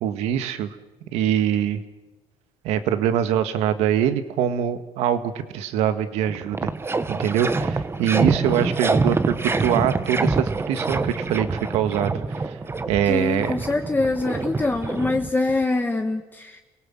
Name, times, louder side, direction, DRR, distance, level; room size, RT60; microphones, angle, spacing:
voice 1, 0.0-0.7 1.1-1.8 2.6-6.7 7.1-9.3 9.6-12.6 12.9-13.5, right 9 dB, 85° right, 10 dB, 1.8 m, -23 dB
sound 1, 6.2-15.6, right 3 dB, 25° right, 1.3 m, -26 dB
voice 2, 13.0-16.6, left 3 dB, 20° left, 4 dB, 1.6 m, -24 dB
29.5 x 18.0 x 7.6 m, 1.1 s
cardioid pair, 95°, 11 cm